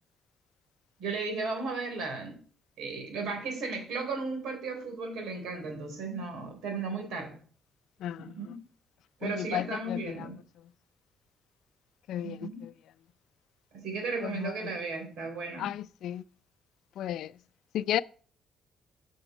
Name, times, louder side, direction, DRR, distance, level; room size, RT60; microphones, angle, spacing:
voice 1, 1.0-2.4 2.8-7.4 8.2-8.6 9.2-10.4 12.2-12.6 13.7-15.7, right 4 dB, 85° right, 3.5 m, -35 dB
voice 2, 8.0-8.5 9.2-10.3 12.1-12.7 14.2-14.7 15.6-16.2 17.0-17.4 17.7-18.0, left 12 dB, 80° left, 0.4 m, -34 dB
8.0 x 6.3 x 4.9 m
cardioid pair, 90°, 0 cm